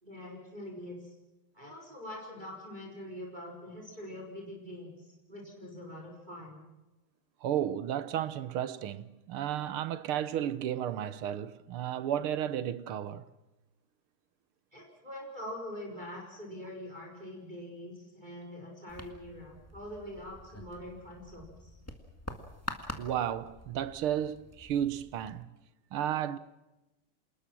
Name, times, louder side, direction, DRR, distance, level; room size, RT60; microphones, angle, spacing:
voice 1, 0.0-1.1 1.5-5.0 5.3-6.7 14.7-21.7, left 1 dB, 20° right, 5.1 m, -44 dB
voice 2, 7.4-13.3 23.0-25.5 25.9-26.4, right 10 dB, 80° right, 1.9 m, -33 dB
sound 1, 18.9-25.4, left 1 dB, 5° left, 1.6 m, -46 dB
27.5 x 20.0 x 6.1 m
omnidirectional pair, 2.4 m